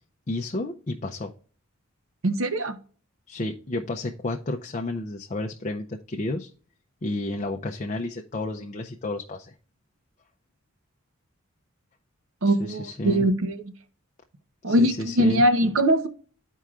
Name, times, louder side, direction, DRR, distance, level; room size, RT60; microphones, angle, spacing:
voice 1, 0.3-1.3 3.3-6.5 7.0-9.5 12.4-13.3 14.7-15.4, left 2 dB, 35° left, 3 dB, 0.5 m, -31 dB
voice 2, 2.2-2.8 12.4-13.6 14.6-16.1, right 1 dB, 70° right, 9 dB, 0.8 m, -21 dB
12.5 x 4.5 x 2.4 m, 0.42 s
head